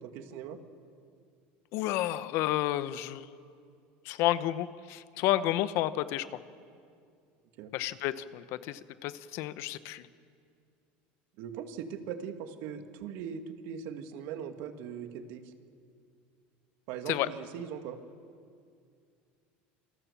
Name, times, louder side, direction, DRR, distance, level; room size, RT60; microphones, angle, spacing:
voice 1, 0.0-0.6 7.6-7.7 11.4-15.5 16.9-18.0, right 8 dB, 65° right, 7 dB, 2.2 m, -40 dB
voice 2, 1.7-3.3 4.0-6.3 7.7-10.0 17.1-17.3, left 14 dB, 60° left, 14 dB, 1.0 m, -31 dB
27.0 x 25.0 x 7.2 m, 2.3 s
supercardioid pair, 125°, 5 cm